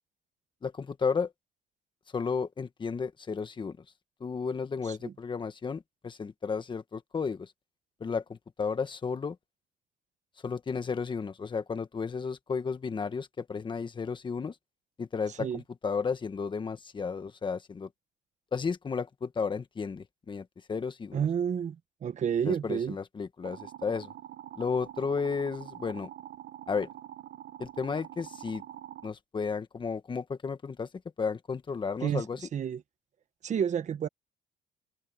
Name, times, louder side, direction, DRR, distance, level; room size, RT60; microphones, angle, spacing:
voice 1, 0.6-1.3 2.1-3.8 4.2-7.5 8.0-9.4 10.4-14.5 15.0-17.9 18.5-21.2 22.4-24.1 24.6-26.1 26.7-26.9 27.6-28.6 29.0-30.9 31.2-32.4, left 5 dB, 30° left, 1.5 m, -33 dB
voice 2, 21.1-21.8 22.0-23.0 32.0-32.2 32.5-32.8 33.4-34.1, right 8 dB, 45° right, 1.4 m, -30 dB
sound 1, 23.4-29.1, right 12 dB, 70° right, 1.3 m, -45 dB
cardioid pair, 110°, 17 cm